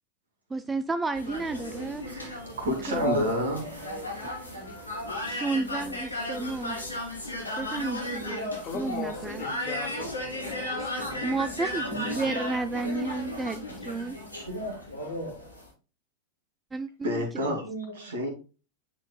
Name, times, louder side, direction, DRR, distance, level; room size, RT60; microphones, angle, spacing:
voice 1, 0.5-2.1 2.7-3.2 5.3-6.8 7.6-9.4 11.2-14.2 16.7-17.5, right 3 dB, 15° right, 0.3 m, -32 dB
sound 1, 1.1-15.7, left 1 dB, 90° left, 2.5 m, -35 dB
voice 2, 2.1-4.7 17.0-17.6 17.9-18.3, equal, 65° right, 2.6 m, -31 dB
voice 3, 2.9-4.1 14.3-15.4 17.7-18.1, left 1 dB, 90° right, 3.0 m, -34 dB
voice 4, 8.4-11.4 11.8-12.3, left 5 dB, 30° left, 1.8 m, -40 dB
10.0 x 4.6 x 2.2 m
figure-of-eight pair, 90°, 0 cm